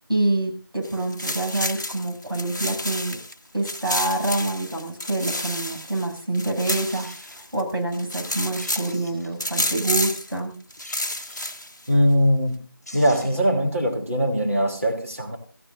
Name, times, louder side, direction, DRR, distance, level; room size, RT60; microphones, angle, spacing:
voice 1, 0.1-3.2 3.5-7.1 7.5-10.6, right 2 dB, 70° right, 7.4 m, -26 dB
sound 1, 0.8-3.3 3.7-7.6 7.9-9.0 9.4-10.3 10.7-11.9, left 1 dB, 50° left, 0.9 m, -30 dB
sound 2, 5.2-5.6 6.4-6.5 6.6-7.4 8.0-8.1 8.4-9.4 10.8-11.7 12.5-12.6 12.8-13.5 13.9-14.0, left 1 dB, ahead, 3.1 m, -44 dB
voice 2, 11.9-12.6 12.9-15.4, equal, 40° right, 2.8 m, -21 dB
25.5 x 15.5 x 2.6 m
figure-of-eight pair, 175°, 12 cm